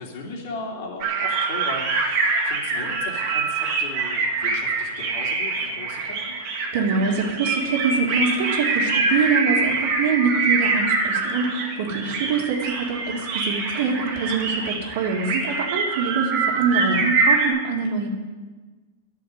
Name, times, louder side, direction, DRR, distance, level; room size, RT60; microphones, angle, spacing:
voice 1, 0.0-6.3 11.9-12.2, left 3 dB, 55° left, 0 dB, 2.9 m, -37 dB
sound 1, 1.0-17.5, right 4 dB, 45° right, 2.0 m, -24 dB
voice 2, 6.7-18.1, right 5 dB, 60° right, 2 dB, 2.3 m, -24 dB
11.0 x 6.9 x 9.5 m, 1.4 s
supercardioid pair, 150°, 0 cm